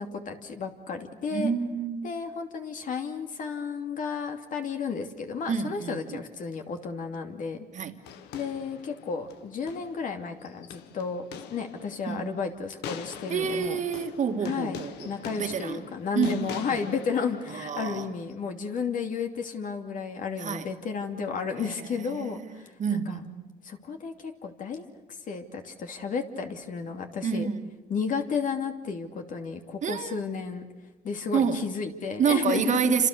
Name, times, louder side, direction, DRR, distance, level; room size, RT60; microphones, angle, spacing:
voice 1, 0.0-1.5 2.0-7.7 8.3-11.2 11.5-13.8 14.4-14.8 15.0-23.2 23.6-24.9 25.3-27.5 27.9-30.6 31.0-32.9, left 5 dB, 50° left, 2.7 m, -32 dB
voice 2, 1.3-2.1 5.5-6.2 7.7-8.0 12.1-12.3 13.3-15.1 15.4-15.9 16.2-16.8 17.5-18.1 20.4-20.7 21.6-23.5 27.2-27.7 29.8-30.2 31.3-31.7 32.2-33.1, right 6 dB, 45° right, 2.2 m, -29 dB
sound 1, 8.0-18.3, left 8 dB, 85° left, 1.7 m, -44 dB
29.0 x 27.0 x 6.8 m
cardioid pair, 110°, 17 cm